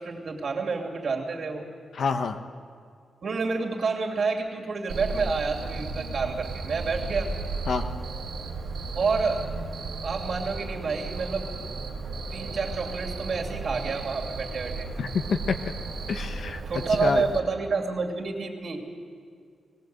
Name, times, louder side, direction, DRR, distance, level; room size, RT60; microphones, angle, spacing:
voice 1, 0.0-1.7 3.2-7.3 8.9-9.5 10.0-11.5 12.3-14.9 16.7-18.8, right 4 dB, 50° right, 1 dB, 2.8 m, -29 dB
voice 2, 2.0-2.4 7.7-7.8 15.0-15.6 16.1-16.6 17.0-17.2, left 5 dB, 65° left, 7 dB, 0.9 m, -27 dB
Cricket, 4.9-17.4, right 3 dB, 80° right, 1.8 m, -34 dB
19.0 x 18.0 x 7.8 m, 2.2 s
wide cardioid pair, 125°, 0 cm